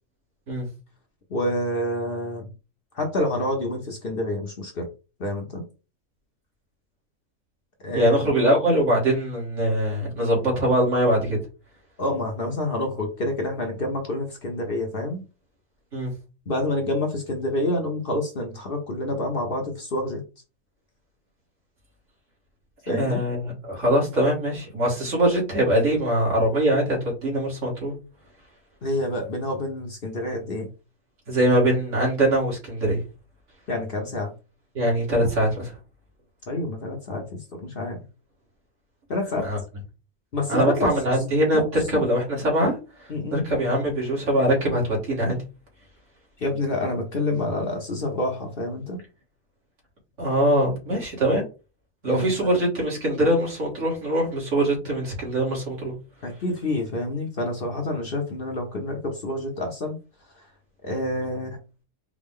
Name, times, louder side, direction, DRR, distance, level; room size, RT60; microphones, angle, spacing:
voice 1, 1.3-2.5 2.9-4.9 5.2-5.6 7.8-8.4 12.0-15.2 16.5-20.2 22.9-23.2 28.8-30.7 33.7-34.3 36.5-38.0 39.1-39.5 40.3-40.9 41.5-42.0 43.1-43.4 46.4-49.0 52.1-52.5 56.2-60.0 60.8-61.6, left 1 dB, 50° left, 0.9 m, -28 dB
voice 2, 7.9-11.4 15.9-16.1 22.8-27.9 31.3-33.0 34.7-35.7 39.4-39.6 40.5-45.4 50.2-51.4 52.0-55.9, right 1 dB, 60° right, 2.2 m, -22 dB
4.8 x 2.3 x 3.6 m
omnidirectional pair, 1.4 m